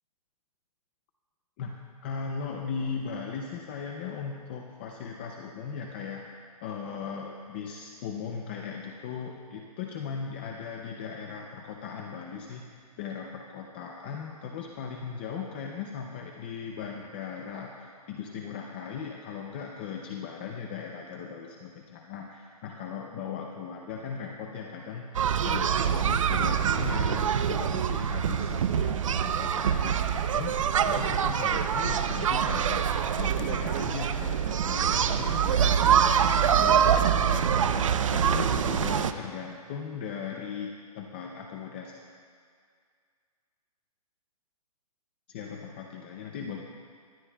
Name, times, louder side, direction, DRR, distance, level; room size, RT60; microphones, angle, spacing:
voice 1, 2.0-42.0 45.3-46.6, left 6 dB, 15° left, 2 dB, 0.5 m, -38 dB
sound 1, 25.1-39.1, right 8 dB, 55° right, 0.7 m, -25 dB
23.0 x 16.5 x 2.3 m, 2.1 s
hypercardioid pair, 170°, 20 cm